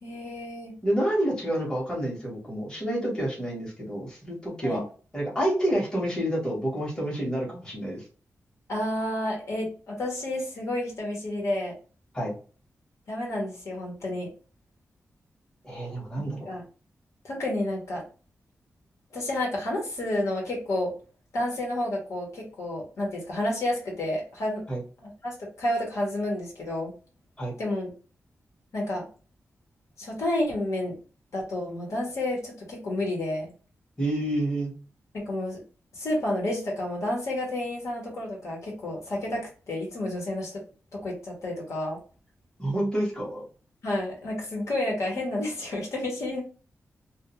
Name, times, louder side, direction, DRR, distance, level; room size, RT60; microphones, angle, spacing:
voice 1, 0.0-0.7 4.6-4.8 8.7-11.7 13.1-14.3 16.2-16.6 17.2-18.0 19.1-20.9 21.3-24.6 25.0-26.9 27.6-27.9 28.7-29.0 30.0-30.9 31.3-33.5 35.1-35.6 35.9-40.6 40.9-42.0 43.8-46.4, left 1 dB, 65° left, -2 dB, 0.9 m, -30 dB
voice 2, 0.8-4.8 5.1-8.0 12.1-12.3 15.6-16.4 24.7-24.8 27.4-27.5 34.0-34.7 42.6-43.4, right 1 dB, 15° left, -4 dB, 0.9 m, -28 dB
2.3 x 2.1 x 2.9 m, 0.38 s
wide cardioid pair, 175°, 5 cm